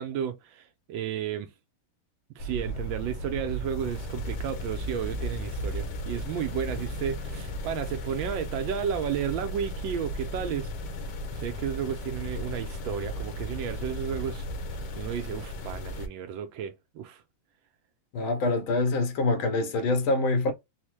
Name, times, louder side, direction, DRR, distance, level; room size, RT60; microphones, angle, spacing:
voice 1, 0.0-1.5 2.3-10.7 11.3-14.4 14.7-17.2, right 8 dB, 80° right, 1.3 m, -33 dB
sound 1, 2.4-16.1, equal, 65° left, 1.2 m, -35 dB
voice 2, 18.1-20.5, left 2 dB, 85° left, 1.7 m, -25 dB
4.0 x 2.1 x 3.0 m
omnidirectional pair, 2.2 m